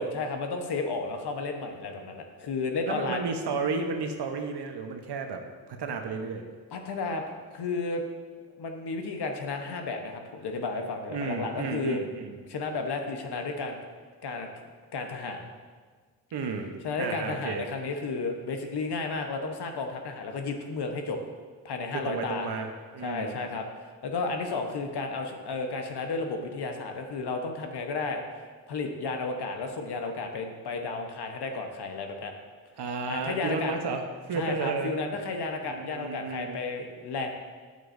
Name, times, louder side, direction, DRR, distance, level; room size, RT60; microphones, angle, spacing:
voice 1, 0.0-3.2 6.7-8.0 8.6-12.0 12.5-13.8 14.2-14.5 14.9-15.5 16.8-21.2 21.6-22.5 23.0-32.3 33.1-33.8 34.3-37.3, left 3 dB, 65° left, 4 dB, 1.2 m, -33 dB
voice 2, 2.8-5.4 5.7-6.4 11.1-12.4 16.3-16.7 17.0-17.6 21.9-22.7 22.9-23.4 32.8-35.0 35.6-36.6, right 4 dB, 65° right, 4 dB, 1.1 m, -32 dB
9.4 x 8.1 x 2.7 m, 1.5 s
supercardioid pair, 45°, 43 cm